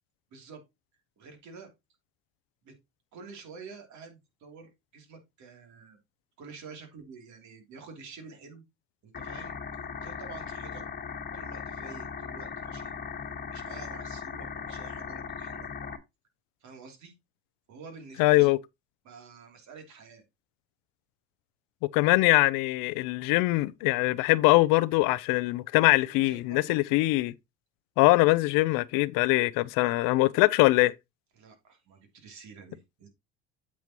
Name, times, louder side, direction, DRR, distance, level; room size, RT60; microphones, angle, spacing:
voice 1, 0.3-0.6 1.2-1.7 2.6-2.7 3.1-6.0 6.4-8.6 9.0-9.6 10.0-10.8 11.3-12.9 13.5-15.7 16.6-17.1 17.7-18.5 19.0-20.2 26.1-26.8 31.3-33.1, right 4 dB, 55° right, 3.0 m, -48 dB
sound 1, 9.1-16.0, left 6 dB, 25° left, 1.6 m, -38 dB
voice 2, 18.2-18.6 21.9-27.3 28.0-30.9, left 20 dB, 70° left, 0.7 m, -22 dB
8.4 x 7.0 x 3.0 m
supercardioid pair, 105°, 34 cm